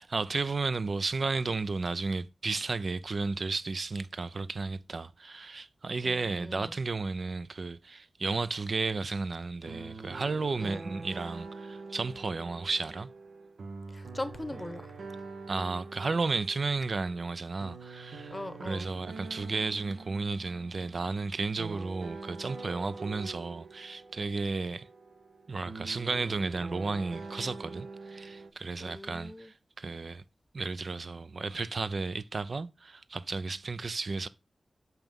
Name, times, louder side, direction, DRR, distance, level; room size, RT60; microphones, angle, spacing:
voice 1, 0.0-13.1 15.5-18.3 18.6-24.9 25.5-30.2 30.5-34.3, right 3 dB, 60° right, 0.4 m, -33 dB
voice 2, 6.0-6.8 10.6-10.9 13.9-14.9 18.3-18.9 28.8-29.5, left 1 dB, 20° left, 0.9 m, -40 dB
sound 1, 9.6-28.5, right 3 dB, 85° right, 1.0 m, -45 dB
6.0 x 5.6 x 5.3 m
wide cardioid pair, 90°, 0 cm